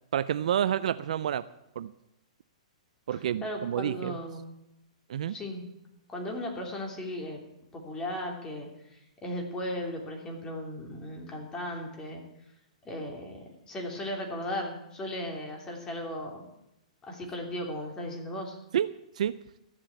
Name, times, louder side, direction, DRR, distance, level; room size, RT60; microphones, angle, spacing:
voice 1, 0.1-1.5 1.8-1.9 3.1-4.2 5.1-5.3 18.7-18.9 19.2-19.4, right 10 dB, 70° right, 14 dB, 0.5 m, -29 dB
voice 2, 3.1-4.5 5.3-5.6 6.1-7.4 7.7-12.2 12.8-16.4 17.1-18.6, left 1 dB, 15° left, 1 dB, 3.0 m, -36 dB
14.0 x 7.4 x 8.2 m, 0.86 s
hypercardioid pair, 140°, 4 cm